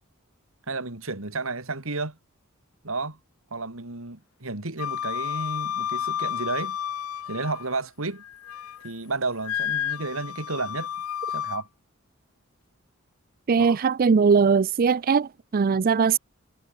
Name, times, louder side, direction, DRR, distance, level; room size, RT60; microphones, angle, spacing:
voice 1, 0.7-2.2 2.8-3.2 3.5-6.8 7.3-8.2 8.8-10.9 11.3-11.7 13.6-13.8, right 3 dB, 70° right, 2.7 m, -32 dB
Wind instrument woodwind instrument, 4.8-7.8 8.2-8.9 9.4-11.6, left 9 dB, 80° left, 0.5 m, -31 dB
voice 2, 13.5-16.2, right 5 dB, 45° right, 0.4 m, -20 dB
head